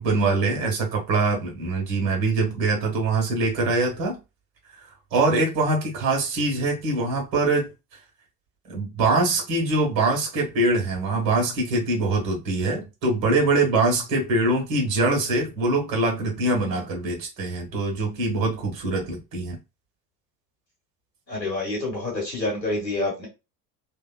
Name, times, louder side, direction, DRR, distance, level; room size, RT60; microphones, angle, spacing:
voice 1, 0.0-4.2 5.1-7.7 8.7-19.6, right 2 dB, 45° right, 1.3 m, -23 dB
voice 2, 21.3-23.3, left 2 dB, 90° left, 1.2 m, -27 dB
2.8 x 2.2 x 2.3 m
figure-of-eight pair, 65°, 50 cm